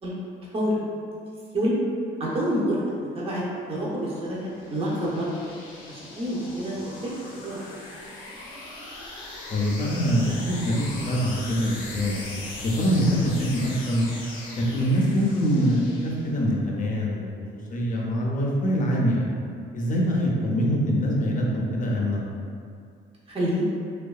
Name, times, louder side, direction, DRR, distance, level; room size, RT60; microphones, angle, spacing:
voice 1, 0.5-0.8 1.5-1.7 2.2-3.4 3.7-5.3 5.9-7.2 7.4-7.6 20.3-20.5 23.3-23.6, equal, 30° right, -7 dB, 0.6 m, -28 dB
sound 1, 3.1-16.6, left 2 dB, 90° left, 0.6 m, -40 dB
voice 2, 9.5-12.2 12.6-14.1 14.5-17.3 17.7-19.3 19.7-22.2, equal, 40° left, -2 dB, 0.5 m, -24 dB
2.7 x 2.2 x 2.3 m, 2.3 s
cardioid pair, 90°, 20 cm